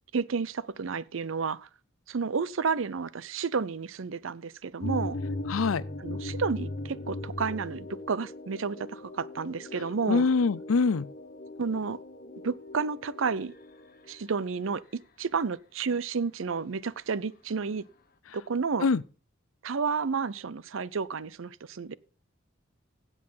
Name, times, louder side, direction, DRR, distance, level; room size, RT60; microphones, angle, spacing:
voice 1, 0.1-1.7 2.1-5.2 6.0-10.3 11.6-12.0 12.4-13.5 14.1-17.8 18.3-18.9 19.6-21.9, right 5 dB, 70° right, 0.6 m, -31 dB
sound 1, 4.8-14.2, left 2 dB, 45° left, 1.5 m, -39 dB
voice 2, 5.5-5.8 10.1-11.1 18.8-19.0, left 4 dB, 85° left, 0.5 m, -24 dB
16.0 x 6.4 x 5.6 m
head